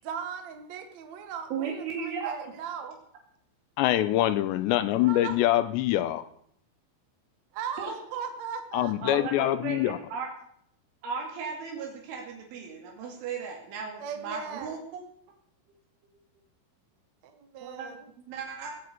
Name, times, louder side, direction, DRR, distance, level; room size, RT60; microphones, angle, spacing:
voice 1, 0.0-3.0 5.0-5.4 7.5-9.2 14.0-14.8 17.2-18.1, right 7 dB, 55° right, 6 dB, 2.1 m, -38 dB
voice 2, 1.5-2.5 7.8-7.9 9.0-10.3 11.0-14.8 17.6-17.9 18.3-18.7, right 5 dB, 80° right, 1 dB, 4.7 m, -36 dB
voice 3, 3.8-6.3 8.7-10.0, left 14 dB, 80° left, 14 dB, 2.8 m, -24 dB
18.5 x 8.2 x 8.3 m, 0.69 s
omnidirectional pair, 5.5 m